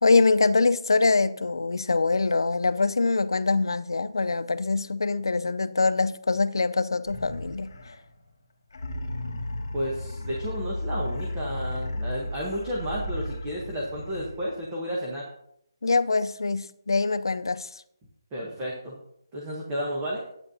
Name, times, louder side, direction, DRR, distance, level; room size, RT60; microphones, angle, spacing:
voice 1, 0.0-7.7 15.8-17.8, left 3 dB, 85° left, 0.5 m, -24 dB
sound 1, 7.1-8.2 8.7-14.7, left 1 dB, 60° left, 1.4 m, -34 dB
voice 2, 9.7-15.3 18.3-19.0 19.3-20.2, equal, 10° right, 0.9 m, -32 dB
11.5 x 8.9 x 2.7 m
hypercardioid pair, 180°, 2 cm